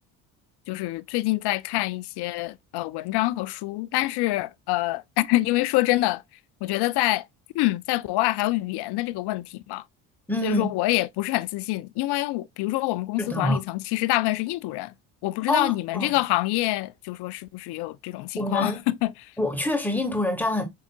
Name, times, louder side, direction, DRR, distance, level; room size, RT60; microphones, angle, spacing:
voice 1, 0.7-6.2 6.6-7.2 7.5-9.8 10.4-14.9 15.2-19.1, left 18 dB, 60° left, 0.5 m, -26 dB
voice 2, 10.3-10.7 13.2-13.6 15.5-16.1 18.4-18.8 19.4-20.6, left 1 dB, 5° left, 1.4 m, -26 dB
5.6 x 3.6 x 2.2 m
hypercardioid pair, 65°, 47 cm